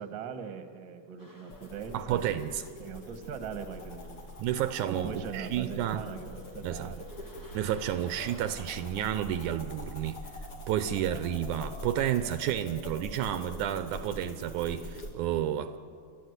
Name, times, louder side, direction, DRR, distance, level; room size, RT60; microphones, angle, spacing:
voice 1, 0.0-2.4 2.8-4.3 4.8-7.3, right 7 dB, 45° right, 7 dB, 1.7 m, -40 dB
sound 1, 1.2-8.9, equal, 25° left, 0.4 m, -56 dB
sound 2, 1.5-15.1, left 1 dB, 45° left, 3.4 m, -44 dB
voice 2, 1.9-2.6 4.4-6.0 6.6-6.9 7.5-10.2 10.7-15.8, right 11 dB, 80° right, 11 dB, 2.1 m, -31 dB
29.5 x 12.5 x 8.1 m, 2.3 s
omnidirectional pair, 3.6 m